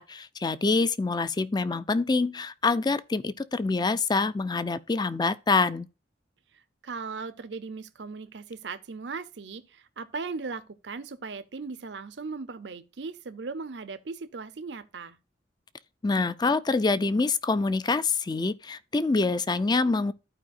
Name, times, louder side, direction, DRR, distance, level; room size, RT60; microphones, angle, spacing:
voice 1, 0.0-5.9 16.0-20.1, left 3 dB, 25° left, 0.5 m, -26 dB
voice 2, 6.5-15.2, right 4 dB, 80° right, 0.7 m, -38 dB
14.0 x 4.8 x 2.6 m
head